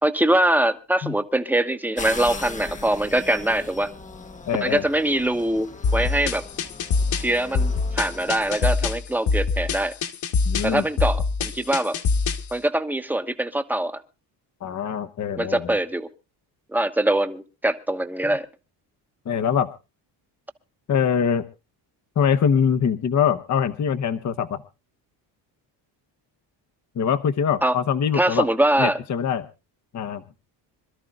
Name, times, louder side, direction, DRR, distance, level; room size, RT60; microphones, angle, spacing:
voice 1, 0.0-3.9 4.6-6.4 7.1-9.9 10.6-12.0 12.5-14.0 15.4-16.1 16.7-18.5 27.6-27.8 28.1-29.0, right 1 dB, 5° right, 9 dB, 1.1 m, -23 dB
sound 1, 2.0-8.8, left 3 dB, 15° left, 1.0 m, -39 dB
voice 2, 4.5-4.8 10.4-10.8 14.6-15.7 19.3-19.7 20.9-21.4 22.2-24.6 26.9-28.5 28.8-29.5 29.9-30.2, left 7 dB, 40° left, 9 dB, 1.0 m, -23 dB
sound 2, 5.8-12.5, left 4 dB, 60° left, 2.2 m, -24 dB
26.5 x 13.0 x 2.4 m, 0.30 s
cardioid pair, 125°, 44 cm